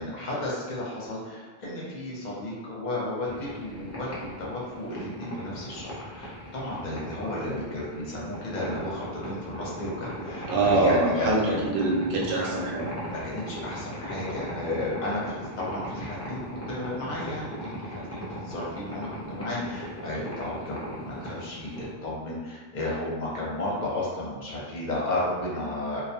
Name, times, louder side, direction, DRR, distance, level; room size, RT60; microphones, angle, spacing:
voice 1, 0.0-11.7 13.0-21.7 22.0-26.0, left 1 dB, 50° left, -5 dB, 0.7 m, -33 dB
sound 1, 3.3-21.9, equal, 20° left, 0.4 m, -39 dB
voice 2, 10.5-12.9, right 2 dB, 65° right, -4 dB, 0.8 m, -24 dB
2.3 x 2.2 x 2.7 m, 1.4 s
omnidirectional pair, 1.1 m